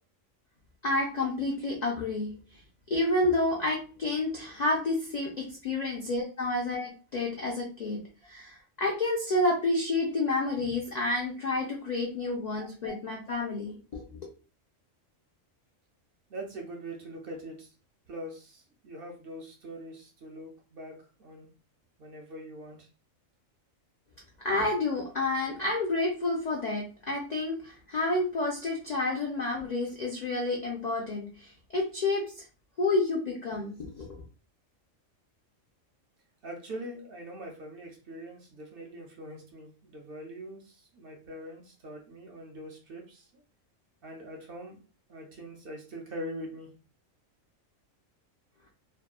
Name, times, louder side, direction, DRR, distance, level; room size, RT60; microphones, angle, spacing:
voice 1, 0.8-2.6 2.9-8.0 8.3-14.0 24.4-32.4 32.8-34.2, left 2 dB, 85° left, -1 dB, 0.3 m, -30 dB
voice 2, 16.3-17.7 18.1-20.9 21.2-21.5 22.0-22.9 36.4-43.4 44.0-44.8 45.1-46.7, right 1 dB, 55° right, 0 dB, 0.7 m, -43 dB
2.7 x 2.2 x 2.3 m, 0.35 s
omnidirectional pair, 1.4 m